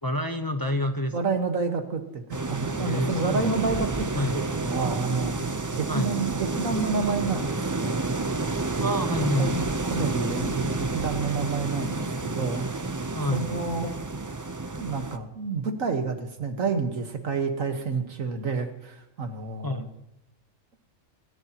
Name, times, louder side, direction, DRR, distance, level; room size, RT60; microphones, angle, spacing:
voice 1, 0.0-1.1 2.8-3.7 4.1-4.4 5.9-6.1 8.8-9.6 13.1-13.4 19.6-19.9, left 1 dB, 20° left, 5 dB, 0.9 m, -28 dB
voice 2, 1.1-4.1 4.3-5.4 5.7-8.0 8.8-8.9 9.4-12.9 13.3-13.9 14.8-19.9, right 4 dB, 80° right, 6 dB, 1.9 m, -29 dB
sound 1, 2.3-15.2, right 3 dB, 25° right, 0.4 m, -30 dB
27.5 x 15.0 x 3.0 m, 0.90 s
omnidirectional pair, 1.4 m